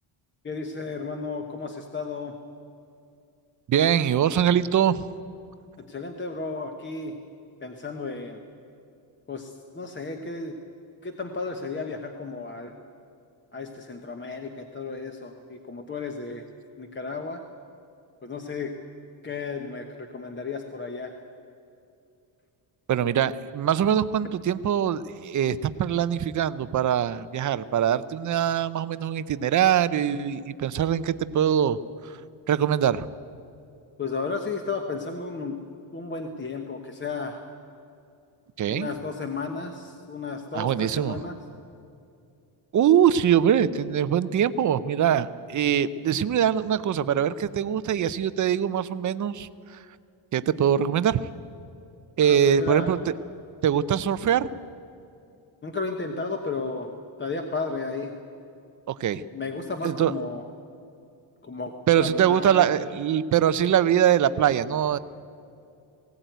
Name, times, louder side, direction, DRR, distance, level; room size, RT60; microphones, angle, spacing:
voice 1, 0.4-2.3 5.9-7.1 7.6-8.4 9.3-10.6 11.0-12.7 13.5-16.4 16.8-17.4 18.2-18.7 19.2-21.1 34.0-35.5 35.9-37.4 38.7-41.4 52.2-52.9 55.6-56.9 57.2-58.1 59.3-60.4 61.4-62.7, left 4 dB, 25° left, 5 dB, 1.0 m, -33 dB
voice 2, 3.7-5.0 22.9-31.8 32.5-33.1 38.6-38.9 40.5-41.2 42.7-49.5 50.3-51.2 52.2-53.0 53.6-54.5 58.9-59.2 59.8-60.1 61.9-65.0, right 9 dB, 40° right, 14 dB, 0.6 m, -23 dB
19.5 x 17.0 x 9.2 m, 2.6 s
cardioid pair, 170°, 49 cm